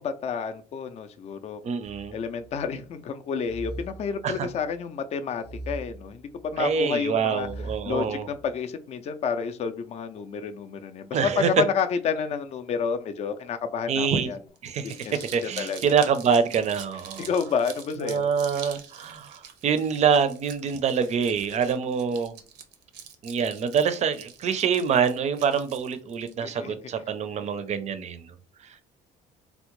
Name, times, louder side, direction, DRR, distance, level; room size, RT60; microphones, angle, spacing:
voice 1, 0.0-1.6 2.1-7.5 7.9-14.4 15.0-15.9 17.2-18.3 26.4-26.7, left 6 dB, 40° left, 0.4 m, -30 dB
voice 2, 1.6-2.2 4.2-4.5 6.6-8.3 11.1-11.5 13.9-14.3 14.6-15.0 15.3-17.3 18.0-22.3 23.2-28.3, right 6 dB, 40° right, 0.4 m, -25 dB
sound 1, 1.8-2.8 3.4-4.7 5.4-6.7 7.4-8.5, right 2 dB, 80° left, 0.6 m, -41 dB
Crumpling crinkling, 14.6-26.3, right 8 dB, 90° right, 0.6 m, -45 dB
3.5 x 2.1 x 3.0 m
cardioid pair, 110°, 17 cm